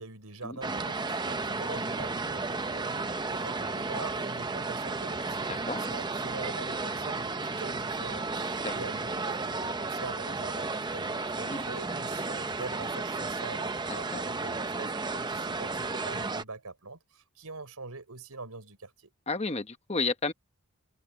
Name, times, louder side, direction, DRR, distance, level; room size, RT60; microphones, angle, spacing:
voice 1, 0.0-19.1, right 3 dB, 90° right, 5.3 m, -44 dB
sound 1, 0.6-16.4, right 3 dB, 20° right, 0.7 m, -33 dB
voice 2, 19.3-20.3, left 3 dB, 30° left, 1.0 m, -31 dB
head